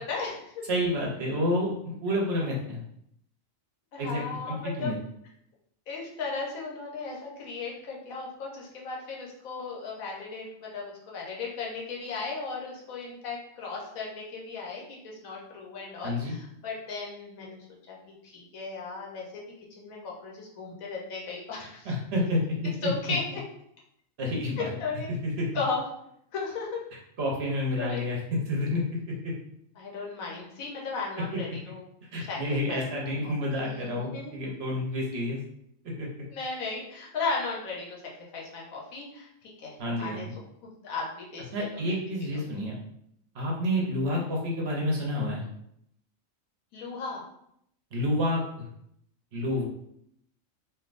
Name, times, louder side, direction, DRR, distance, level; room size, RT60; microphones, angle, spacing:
voice 1, 0.0-0.6 3.9-4.9 5.9-17.6 17.9-19.4 19.7-21.9 22.8-23.4 24.8-25.1 25.5-25.8 26.3-26.8 27.8-28.1 29.8-31.8 32.2-32.8 33.2-33.3 33.6-34.3 36.3-38.0 38.3-41.9 42.3-42.5 46.7-47.2, left 4 dB, 85° left, -2 dB, 1.2 m, -36 dB
voice 2, 0.7-2.8 4.0-4.9 16.0-16.3 21.8-22.9 24.2-24.7 25.2-25.5 27.2-29.3 31.3-31.4 32.1-35.4 36.0-36.1 39.8-40.2 41.5-42.8 43.3-45.4 47.9-48.7 49.3-49.6, left 1 dB, 55° right, -2 dB, 0.9 m, -29 dB
3.2 x 2.5 x 2.5 m, 0.73 s
omnidirectional pair, 1.4 m